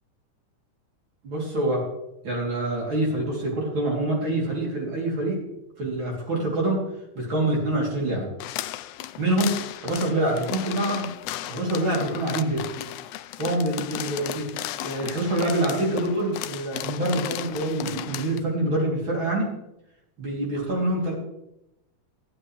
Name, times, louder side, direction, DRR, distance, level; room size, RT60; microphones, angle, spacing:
voice 1, 1.2-1.8 2.2-5.4 5.8-6.8 7.2-8.3 9.2-11.1 11.5-12.7 13.4-14.5 14.8-19.5 20.2-21.1, right 1 dB, 40° right, -3 dB, 4.0 m, -26 dB
sound 1, 8.4-18.4, left 14 dB, 90° left, 1.4 m, -35 dB
15.0 x 12.5 x 3.4 m, 0.86 s
omnidirectional pair, 3.5 m